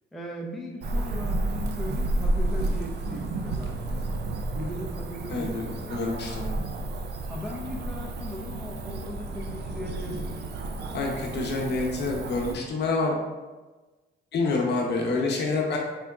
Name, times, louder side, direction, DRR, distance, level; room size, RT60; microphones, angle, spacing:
voice 1, 0.1-4.0 4.5-6.0 7.3-10.3, left 1 dB, ahead, -2 dB, 0.5 m, -38 dB
Cricket / Motor vehicle (road), 0.8-12.5, right 2 dB, 55° right, 0.4 m, -31 dB
voice 2, 5.3-6.5 10.9-13.1 14.3-15.8, left 3 dB, 60° left, -1 dB, 0.8 m, -27 dB
3.8 x 3.4 x 2.3 m, 1.2 s
cardioid pair, 90°, 20 cm